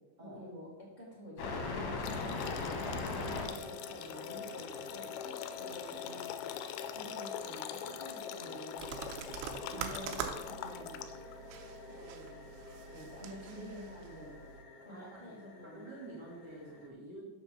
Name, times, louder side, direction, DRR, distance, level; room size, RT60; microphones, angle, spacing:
voice 1, 0.2-0.7 1.0-5.1 5.5-6.5 6.9-8.9 9.5-11.1 11.9-12.4 12.8-14.4 14.8-15.8, equal, 15° right, -4 dB, 1.6 m, -49 dB
sound 1, 1.4-16.9, left 4 dB, 65° left, 2.4 m, -43 dB
sound 2, 2.0-11.3, left 10 dB, 85° left, 3.1 m, -44 dB
sound 3, 8.8-14.6, right 8 dB, 85° right, 3.1 m, -45 dB
voice 2, 14.9-15.3 15.6-17.3, right 2 dB, 45° right, -5 dB, 1.3 m, -48 dB
7.1 x 7.1 x 6.8 m, 1.1 s
omnidirectional pair, 5.9 m